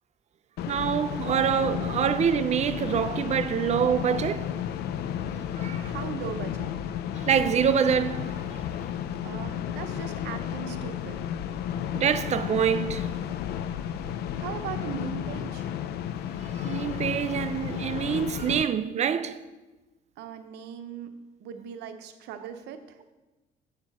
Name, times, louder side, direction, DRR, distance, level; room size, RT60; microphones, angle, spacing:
sound 1, 0.6-18.6, left 9 dB, 70° left, 0.5 m, -33 dB
voice 1, 0.7-4.5 5.6-5.9 7.2-8.4 11.9-13.1 16.5-19.4, right 8 dB, 40° right, 0.5 m, -26 dB
voice 2, 5.8-6.7 9.2-11.2 14.4-15.7 20.2-21.1 21.4-23.0, right 8 dB, 80° right, 0.8 m, -39 dB
8.0 x 4.4 x 7.2 m
cardioid pair, 110°, 17 cm